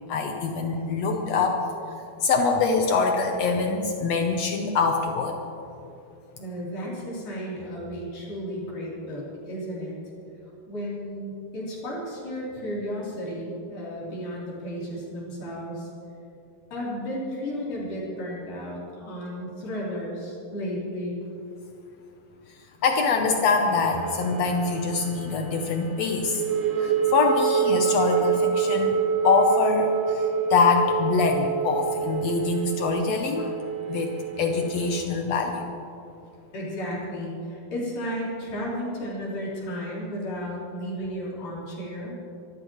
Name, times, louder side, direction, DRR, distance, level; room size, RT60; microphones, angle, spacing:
voice 1, 0.1-1.6 2.2-5.3 22.8-26.4 26.8-29.0 29.2-33.5 33.9-35.6, left 4 dB, 85° left, 3 dB, 1.4 m, -24 dB
voice 2, 6.4-9.9 10.7-15.9 16.7-21.2 36.5-42.2, equal, 65° left, -6 dB, 5.1 m, -33 dB
sound 1, 23.2-35.1, right 7 dB, 90° right, 2.9 m, -27 dB
25.0 x 14.0 x 3.1 m, 2.7 s
omnidirectional pair, 4.2 m